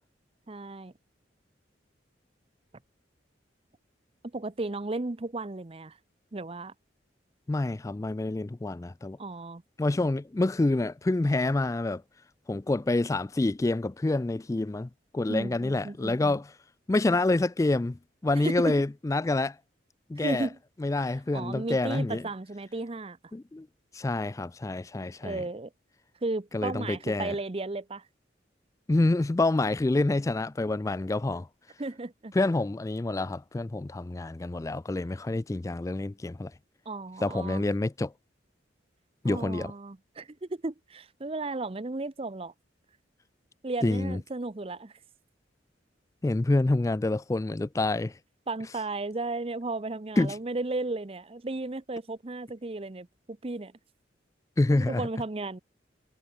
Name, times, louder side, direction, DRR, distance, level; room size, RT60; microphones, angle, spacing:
voice 1, 0.5-0.9 4.3-6.0 6.3-6.7 9.2-9.6 15.3-16.4 18.3-18.8 20.2-20.6 21.3-23.2 25.2-25.7 26.2-28.0 31.8-32.3 36.9-37.7 39.2-42.5 43.6-44.9 48.5-53.7 54.7-55.6, right 2 dB, 30° right, 0.7 m, -34 dB
voice 2, 7.5-9.2 9.8-12.0 12.5-16.5 16.9-19.6 20.1-20.5 20.8-22.2 23.3-23.7 23.9-25.4 26.5-27.3 28.9-31.5 32.3-36.5 37.2-38.1 39.2-39.7 43.8-44.2 46.2-48.2 50.2-50.4 54.6-55.1, left 2 dB, 15° left, 0.3 m, -27 dB
head